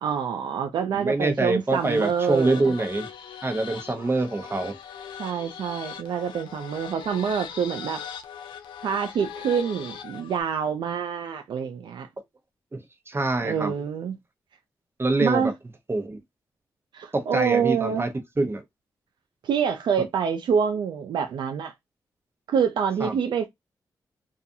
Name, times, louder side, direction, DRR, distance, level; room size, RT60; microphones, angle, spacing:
voice 1, 0.0-2.7 5.2-8.0 8.8-12.1 13.4-14.2 15.2-15.5 16.9-18.0 19.4-21.7 22.5-23.5, right 7 dB, 75° right, 0.4 m, -26 dB
voice 2, 0.9-3.1 3.4-4.8 12.7-13.7 15.0-15.5 15.9-16.2 17.1-18.1 18.4-18.6 23.0-23.2, right 2 dB, 30° right, 0.9 m, -25 dB
sound 1, 1.7-10.4, left 8 dB, 90° left, 0.4 m, -40 dB
2.4 x 2.3 x 2.6 m
supercardioid pair, 50°, 8 cm